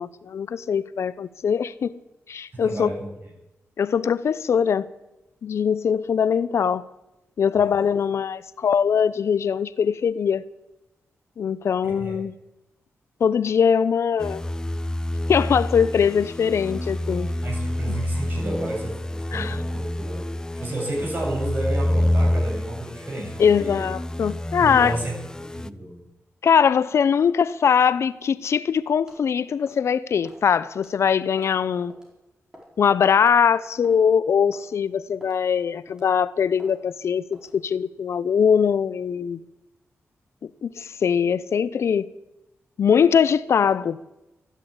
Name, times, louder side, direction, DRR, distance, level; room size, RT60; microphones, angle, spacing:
voice 1, 0.0-2.0 2.3-2.9 3.8-4.9 5.4-6.9 7.4-10.4 11.4-12.3 13.2-14.4 15.3-17.3 19.3-19.6 23.4-25.0 26.4-31.9 32.8-39.4 40.4-42.1 42.8-44.0, left 7 dB, 70° left, 0.5 m, -21 dB
voice 2, 2.5-3.1 7.5-7.9 11.8-12.2 17.4-23.9 24.6-26.0, right 1 dB, 40° right, 7.8 m, -32 dB
sound 1, 14.2-25.7, left 1 dB, 15° left, 0.5 m, -28 dB
sound 2, 29.1-29.3 29.7-29.9 30.2-30.4 30.8-30.9 31.4-31.6 31.9-32.1 32.5-32.8 33.2-33.3 33.8-34.0 34.5-34.7 35.2-35.4 35.9-36.1 36.6-36.8 37.3-37.6, equal, 15° right, 4.7 m, -48 dB
14.5 x 11.0 x 8.6 m
wide cardioid pair, 110°, 5 cm